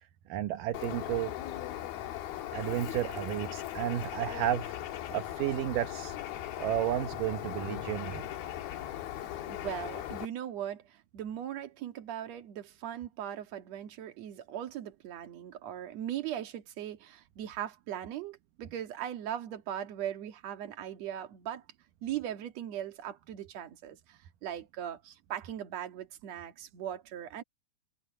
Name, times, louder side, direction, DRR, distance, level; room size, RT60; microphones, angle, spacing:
voice 1, 0.3-1.3 2.5-4.7 5.1-6.2 6.6-8.3, right 12 dB, 70° right, 2.4 m, -32 dB
Bird, 0.7-10.3, left 12 dB, 80° left, 3.3 m, -38 dB
voice 2, 9.4-21.6 22.0-27.4, right 10 dB, 50° right, 2.6 m, -39 dB
omnidirectional pair, 4.3 m